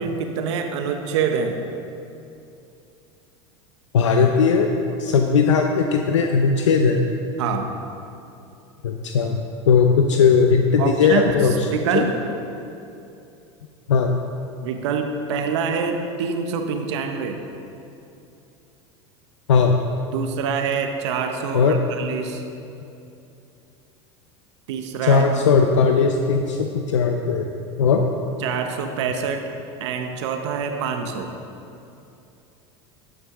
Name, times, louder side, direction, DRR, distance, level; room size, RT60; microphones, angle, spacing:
voice 1, 0.0-1.6 7.4-7.7 10.8-12.1 14.6-17.4 20.1-22.4 24.7-25.3 28.4-29.5 29.8-31.3, right 6 dB, 75° right, 5 dB, 0.8 m, -25 dB
voice 2, 3.9-4.7 5.0-7.0 8.8-9.4 9.7-11.5 11.9-12.1 13.9-14.1 19.5-19.7 21.5-21.8 25.0-27.5 27.8-28.0, left 5 dB, 90° left, 3 dB, 0.5 m, -18 dB
12.0 x 6.3 x 3.6 m, 2.7 s
hypercardioid pair, 95°, 15 cm